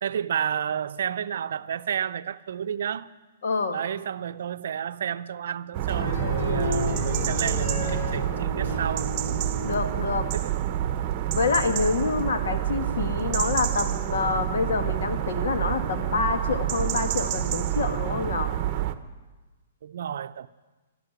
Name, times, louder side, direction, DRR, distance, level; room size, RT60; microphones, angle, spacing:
voice 1, 0.0-3.1 3.7-9.1 10.3-10.6 19.8-20.5, right 8 dB, 70° right, 0.5 m, -31 dB
voice 2, 3.4-3.8 9.6-10.3 11.3-18.5, left 4 dB, 70° left, 1.8 m, -27 dB
sound 1, 5.7-18.9, right 12 dB, 35° right, 0.9 m, -28 dB
sound 2, 5.9-10.0, left 4 dB, 55° left, 3.1 m, -32 dB
13.0 x 12.0 x 9.0 m
hypercardioid pair, 140°, 0 cm